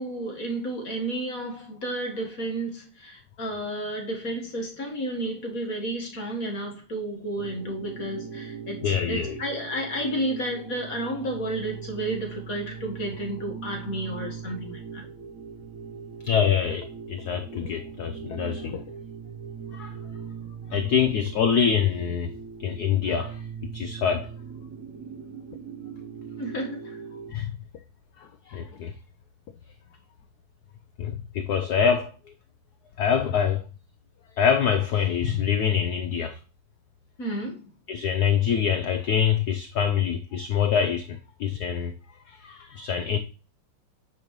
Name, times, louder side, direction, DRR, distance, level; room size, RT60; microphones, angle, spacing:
voice 1, 0.0-15.0 26.4-27.0 37.2-37.6, right 1 dB, 45° left, 1.8 m, -32 dB
sound 1, 7.4-27.3, right 6 dB, 60° right, 0.8 m, -40 dB
voice 2, 8.8-9.4 16.2-18.8 19.7-19.9 20.7-22.3 22.6-23.4 23.7-24.3 27.3-27.5 28.2-28.9 31.0-32.1 33.0-33.6 34.4-36.4 37.9-41.9 42.3-43.2, left 7 dB, 90° left, 0.8 m, -25 dB
8.9 x 5.2 x 3.1 m
omnidirectional pair, 2.4 m